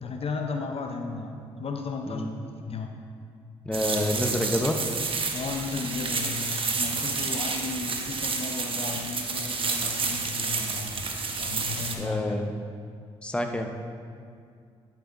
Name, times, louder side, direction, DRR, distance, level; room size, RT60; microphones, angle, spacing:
voice 1, 0.0-2.9 5.3-11.0 11.4-12.6, left 4 dB, 45° left, 4 dB, 0.7 m, -35 dB
voice 2, 3.6-4.8 12.0-12.5 13.2-13.7, left 1 dB, 10° left, 4 dB, 0.9 m, -28 dB
sound 1, 3.7-11.9, right 4 dB, 40° right, 1.0 m, -30 dB
10.5 x 8.0 x 2.7 m, 2.3 s
hypercardioid pair, 45°, 14 cm